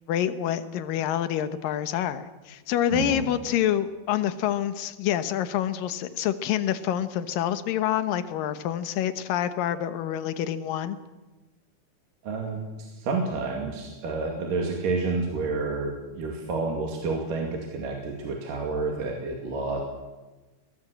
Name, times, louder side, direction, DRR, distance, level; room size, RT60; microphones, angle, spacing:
voice 1, 0.1-11.0, left 11 dB, 70° left, 11 dB, 2.7 m, -27 dB
voice 2, 2.9-3.2 12.2-19.8, right 3 dB, 65° right, 1 dB, 4.0 m, -29 dB
22.5 x 18.5 x 7.9 m, 1.2 s
omnidirectional pair, 4.3 m